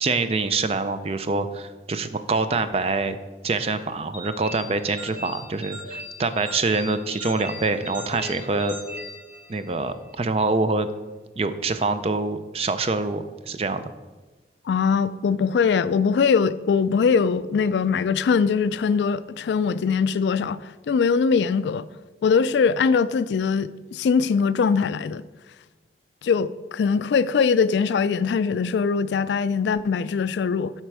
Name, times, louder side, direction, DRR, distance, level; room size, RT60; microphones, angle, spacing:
voice 1, 0.0-3.2 3.4-8.8 9.5-10.9 11.4-13.9, right 3 dB, 35° right, 0.4 m, -25 dB
sound 1, 4.1-9.9, equal, 5° right, 1.3 m, -38 dB
voice 2, 14.7-20.6 20.9-21.8 22.2-25.2 26.2-30.7, left 5 dB, 75° left, 0.3 m, -21 dB
8.0 x 4.4 x 6.1 m
head